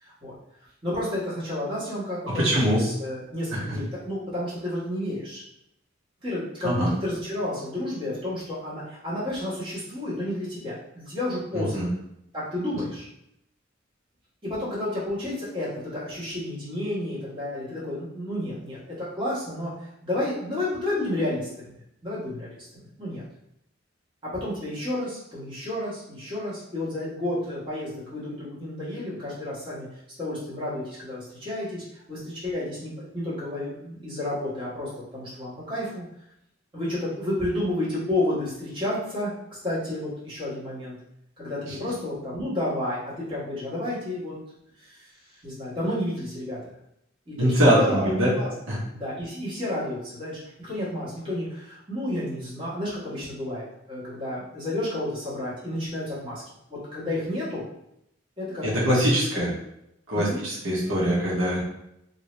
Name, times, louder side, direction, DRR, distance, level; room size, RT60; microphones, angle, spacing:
voice 1, 0.0-0.3 0.8-5.4 6.2-11.8 12.3-13.1 14.4-19.7 20.0-21.7 22.0-23.2 24.2-29.9 30.2-36.0 36.7-40.9 41.4-44.3 44.8-45.0 45.4-46.6 47.3-56.4 56.7-57.7 58.4-59.2 60.1-60.4, left 1 dB, 25° right, -9 dB, 1.4 m, -31 dB
voice 2, 2.3-2.8 3.5-3.6 6.6-6.9 11.5-11.9 47.4-48.3 48.7-48.8 58.6-59.5 60.1-61.6, equal, 85° right, -6 dB, 1.1 m, -22 dB
2.8 x 2.7 x 3.2 m, 0.80 s
head